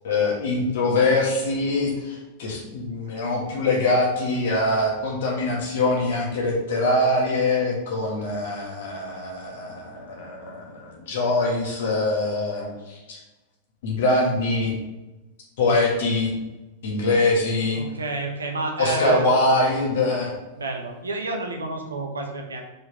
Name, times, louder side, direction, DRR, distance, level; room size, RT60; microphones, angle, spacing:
voice 1, 0.0-13.2 13.8-14.8 15.6-16.3 16.8-17.8 18.8-20.3, left 2 dB, 55° left, -2 dB, 1.9 m, -23 dB
voice 2, 17.7-19.2 20.6-22.6, right 2 dB, 75° right, 3 dB, 1.0 m, -29 dB
5.1 x 4.9 x 4.9 m, 1.1 s
figure-of-eight pair, 90°, 0 cm